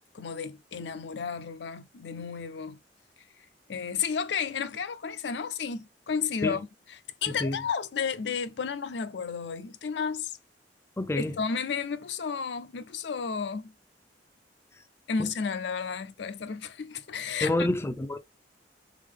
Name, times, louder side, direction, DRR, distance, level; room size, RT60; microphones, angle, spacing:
voice 1, 0.1-2.8 3.7-10.4 11.2-13.7 15.1-17.5, left 6 dB, 70° left, 0.5 m, -32 dB
voice 2, 7.3-7.6 11.0-11.3 17.4-18.2, left 1 dB, 15° left, 0.4 m, -28 dB
3.7 x 3.5 x 3.6 m
head